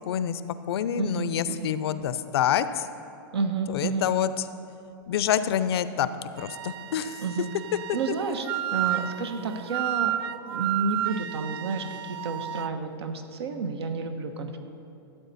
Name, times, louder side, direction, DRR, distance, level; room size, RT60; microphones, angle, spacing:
voice 1, 0.1-0.4 0.7-2.9 3.7-4.3 5.1-6.1 6.4-7.2, left 9 dB, 75° left, 13 dB, 0.5 m, -27 dB
voice 2, 1.0-1.7 3.3-4.1 7.2-7.5 7.9-10.2 10.5-14.6, right 4 dB, 90° right, 7 dB, 1.0 m, -30 dB
Wind instrument woodwind instrument, 6.4-12.7, right 12 dB, 65° right, 0.4 m, -32 dB
13.5 x 7.9 x 4.2 m, 2.6 s
hypercardioid pair, 145°, 13 cm